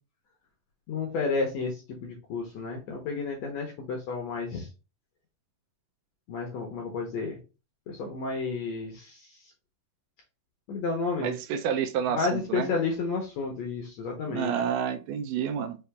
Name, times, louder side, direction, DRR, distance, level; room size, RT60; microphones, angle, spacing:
voice 1, 0.9-4.7 6.3-7.4 7.9-9.4 10.7-11.3 12.1-14.5, left 4 dB, 70° left, 1 dB, 1.7 m, -31 dB
voice 2, 11.2-12.7 14.3-15.8, right 8 dB, 80° right, 7 dB, 2.1 m, -29 dB
5.7 x 2.7 x 3.3 m, 0.31 s
omnidirectional pair, 3.9 m